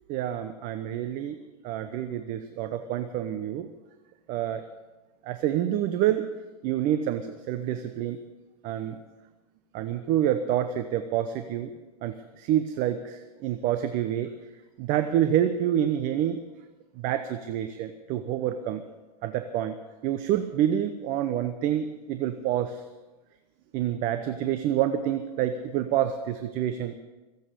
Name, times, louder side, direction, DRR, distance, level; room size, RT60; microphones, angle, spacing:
voice 1, 0.1-1.4 1.6-3.7 4.3-4.6 5.2-6.3 6.6-8.2 8.6-9.0 9.7-11.7 12.0-14.3 14.8-16.4 17.0-18.8 19.2-19.7 20.0-22.8 23.7-26.9, right 11 dB, 40° right, 9 dB, 0.9 m, -27 dB
22.5 x 8.1 x 6.9 m, 1.2 s
hypercardioid pair, 105°, 20 cm